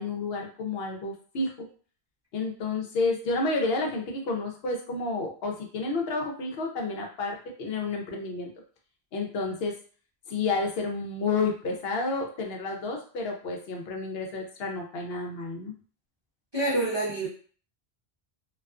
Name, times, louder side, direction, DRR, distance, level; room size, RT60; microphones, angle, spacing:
voice 1, 0.0-1.5 2.3-8.5 9.1-9.7 10.3-15.7, left 3 dB, 75° left, 1 dB, 0.8 m, -30 dB
voice 2, 16.5-17.3, right 2 dB, 30° right, -6 dB, 0.5 m, -27 dB
2.3 x 2.3 x 2.3 m, 0.42 s
omnidirectional pair, 1.1 m